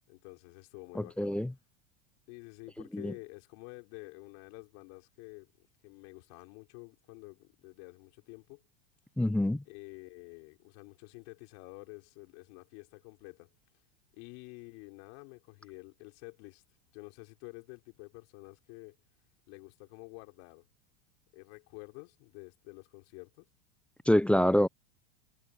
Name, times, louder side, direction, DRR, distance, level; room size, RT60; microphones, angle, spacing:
voice 1, 0.0-1.4 2.3-8.6 9.7-13.5 14.1-16.6 16.9-19.0 19.5-20.6 21.3-23.5, left 34 dB, 60° left, 5.4 m, -49 dB
voice 2, 1.0-1.5 2.9-3.1 9.2-9.6 24.1-24.7, left 1 dB, 5° left, 0.5 m, -26 dB
supercardioid pair, 120°, 34 cm